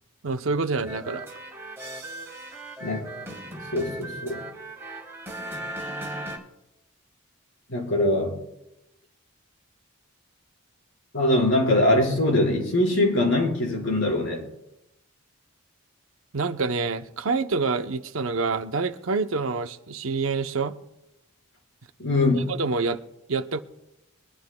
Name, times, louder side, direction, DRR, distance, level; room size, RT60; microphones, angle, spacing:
voice 1, 0.2-1.3 16.3-20.8 22.3-23.0 23.3-23.6, right 4 dB, 70° right, 9 dB, 0.7 m, -27 dB
sound 1, 0.9-6.4, right 1 dB, 10° right, 3.1 m, -37 dB
voice 2, 2.8-4.4 7.7-8.3 11.1-14.5 22.0-22.5, left 1 dB, 65° left, -2 dB, 4.3 m, -23 dB
23.0 x 12.0 x 2.2 m, 0.86 s
head